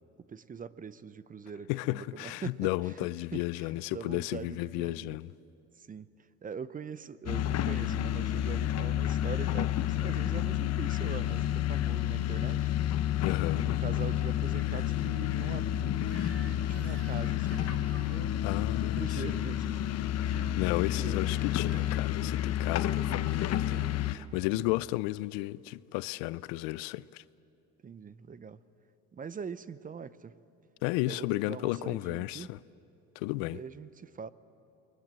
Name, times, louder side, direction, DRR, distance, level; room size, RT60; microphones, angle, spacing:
voice 1, 0.3-2.7 3.0-5.2 5.8-6.1 6.4-12.7 13.4-18.3 18.8-19.9 20.2-20.6 21.0-21.2 24.5-24.6 27.8-28.6 29.1-30.4 31.1-32.5 33.5-34.3, right 6 dB, 25° right, 0.7 m, -43 dB
voice 2, 1.7-5.3 13.2-13.6 18.4-19.4 20.6-27.2 30.8-32.6 33.2-33.6, left 20 dB, 70° left, 0.5 m, -33 dB
sound 1, 7.3-24.1, left 12 dB, 45° left, 1.0 m, -30 dB
Crying sobbing / Screech, 16.0-18.2 20.1-20.4 21.1-22.1, right 4 dB, 40° right, 3.6 m, -54 dB
28.5 x 23.0 x 7.6 m
supercardioid pair, 85°, 34 cm